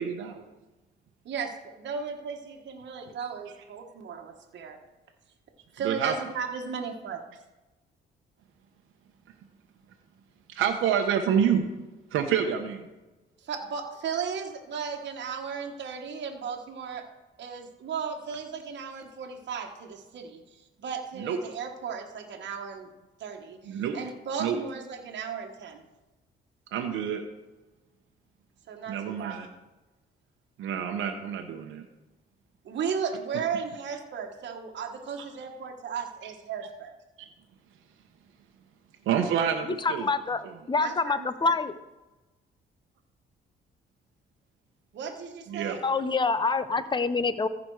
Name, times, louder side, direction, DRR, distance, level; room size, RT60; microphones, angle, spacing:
voice 1, 0.0-0.3 5.8-6.2 10.5-11.7 12.1-12.9 21.2-21.4 23.6-24.0 24.4-24.6 26.7-27.2 28.9-29.5 30.6-31.9 35.2-35.3 39.1-40.1 40.4-40.6 45.5-45.8, right 8 dB, 85° right, 3 dB, 1.0 m, -27 dB
voice 2, 1.3-4.8 5.7-7.2 13.4-17.0 17.4-20.4 20.8-22.9 23.2-25.8 28.7-29.4 32.6-36.9 40.8-41.5 44.9-45.8, right 6 dB, 65° right, 2 dB, 1.4 m, -35 dB
voice 3, 39.8-41.7 45.8-47.5, left 4 dB, 25° left, 13 dB, 0.7 m, -26 dB
15.0 x 5.2 x 4.8 m, 1.1 s
cardioid pair, 90°, 20 cm